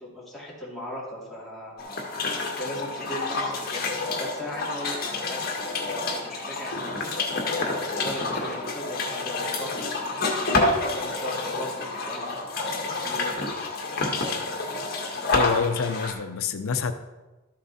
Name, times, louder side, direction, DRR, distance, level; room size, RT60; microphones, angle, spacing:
voice 1, 0.0-1.8 2.6-5.6 5.8-7.4 7.9-9.9 10.6-13.5, left 1 dB, ahead, -6 dB, 2.7 m, -38 dB
sound 1, 1.8-16.1, left 3 dB, 45° left, 1.8 m, -28 dB
voice 2, 15.3-16.9, left 5 dB, 85° left, 9 dB, 0.6 m, -27 dB
13.0 x 7.5 x 4.2 m, 1.1 s
head